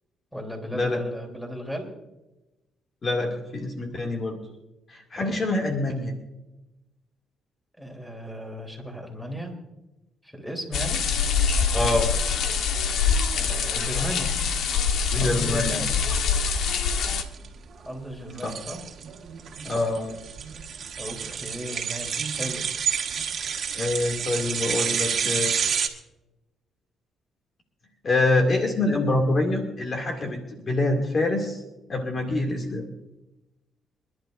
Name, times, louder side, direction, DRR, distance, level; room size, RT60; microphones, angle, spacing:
voice 1, 0.3-1.9 5.1-5.4 7.8-9.5 10.2-11.0 13.3-14.4 15.2-16.0 17.8-18.8 21.0-22.6, equal, ahead, 2 dB, 3.4 m, -35 dB
voice 2, 3.0-4.4 4.9-6.2 11.7-12.1 15.1-15.8 18.4-18.5 19.6-20.2 23.7-25.5 28.0-31.6 31.9-32.9, left 2 dB, 40° left, 2 dB, 2.4 m, -25 dB
sound 1, 10.7-17.2, left 6 dB, 75° left, 1.3 m, -24 dB
sound 2, 15.9-25.9, right 7 dB, 55° right, 1.9 m, -30 dB
27.0 x 11.5 x 2.6 m, 0.99 s
cardioid pair, 90°, 0 cm